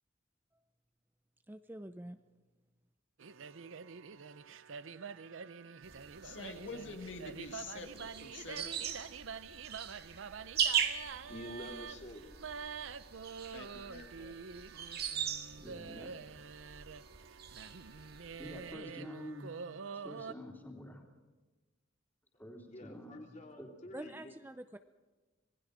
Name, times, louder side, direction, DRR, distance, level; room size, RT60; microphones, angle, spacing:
voice 1, 1.5-2.2 23.9-24.8, right 1 dB, 10° right, 0.6 m, -46 dB
sound 1, 3.2-20.3, right 6 dB, 85° right, 0.7 m, -47 dB
sound 2, 5.8-18.7, right 8 dB, 55° right, 1.8 m, -40 dB
voice 2, 6.2-8.8 13.5-14.4, left 3 dB, 65° left, 2.1 m, -47 dB
voice 3, 11.3-12.3 22.7-24.3, left 1 dB, 40° left, 2.9 m, -48 dB
voice 4, 15.6-16.1 18.4-19.5 19.9-21.0 22.4-23.2 23.6-23.7, left 1 dB, 10° left, 3.3 m, -48 dB
27.0 x 19.5 x 5.0 m
head